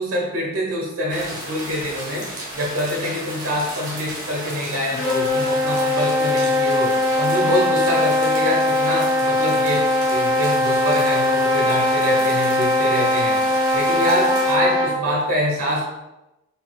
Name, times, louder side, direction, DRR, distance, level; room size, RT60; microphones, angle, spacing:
voice 1, 0.0-2.3 2.5-15.8, equal, 75° right, -2 dB, 1.2 m, -25 dB
sound 1, 1.1-14.5, right 1 dB, 20° right, 0.8 m, -34 dB
sound 2, 4.8-15.1, left 1 dB, 15° left, 0.8 m, -20 dB
4.2 x 3.6 x 2.3 m, 0.98 s
head